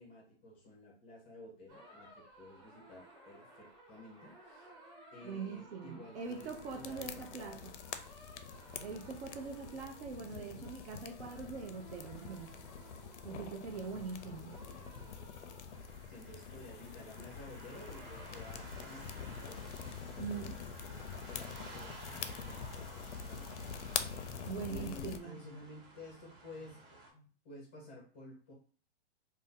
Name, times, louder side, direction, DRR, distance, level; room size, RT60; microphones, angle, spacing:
voice 1, 0.0-7.7 10.3-10.7 14.2-14.9 16.1-19.6 20.1-23.8 24.7-28.5, left 2 dB, 10° left, -3 dB, 0.4 m, -53 dB
sound 1, 1.7-18.4, right 1 dB, 30° right, 1.1 m, -58 dB
voice 2, 5.2-7.7 8.8-12.6 13.2-14.6 20.2-20.6 24.4-25.4, right 5 dB, 75° right, 2 dB, 0.8 m, -43 dB
sound 2, 6.3-25.2, left 7 dB, 85° left, 0.5 m, -45 dB
sound 3, 15.7-27.1, right 2 dB, 50° right, 1.1 m, -54 dB
2.6 x 2.2 x 3.5 m, 0.42 s
hypercardioid pair, 170°, 34 cm